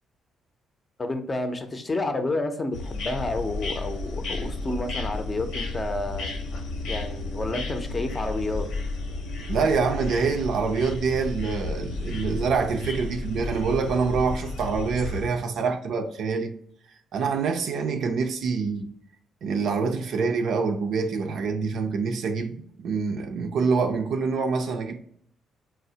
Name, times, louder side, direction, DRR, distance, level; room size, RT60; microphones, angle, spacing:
voice 1, 1.0-6.3 6.9-8.6, left 2 dB, 25° left, 0.5 m, -30 dB
sound 1, 2.7-15.3, left 2 dB, 80° left, 0.8 m, -32 dB
voice 2, 9.5-16.5 17.1-18.9 19.4-25.0, right 5 dB, 70° right, 0.5 m, -26 dB
4.3 x 2.0 x 2.7 m
cardioid pair, 90°, 0 cm